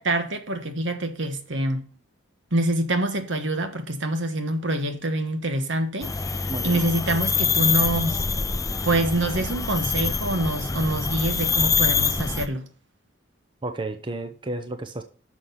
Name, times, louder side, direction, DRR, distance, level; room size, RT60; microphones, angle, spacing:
voice 1, 0.0-1.8 2.5-6.4 6.6-8.2 8.8-12.7, right 1 dB, 65° right, 1.3 m, -26 dB
sound 1, 6.0-12.5, left 5 dB, 15° left, 0.5 m, -25 dB
voice 2, 6.5-6.8 13.6-15.0, right 2 dB, 25° right, 0.7 m, -32 dB
6.4 x 5.9 x 7.0 m
head